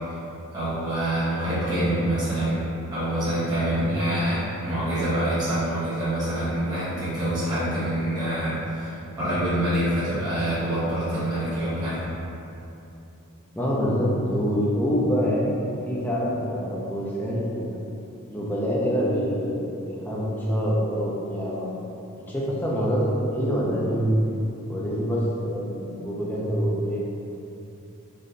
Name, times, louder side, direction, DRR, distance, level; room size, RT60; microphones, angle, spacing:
voice 1, 0.5-2.6 2.9-12.0, right 1 dB, 20° right, -14 dB, 1.2 m, -26 dB
voice 2, 13.5-17.8 18.3-21.8 22.2-24.2 24.7-27.0, equal, 10° left, -6 dB, 0.6 m, -26 dB
4.1 x 2.7 x 3.2 m, 2.9 s
head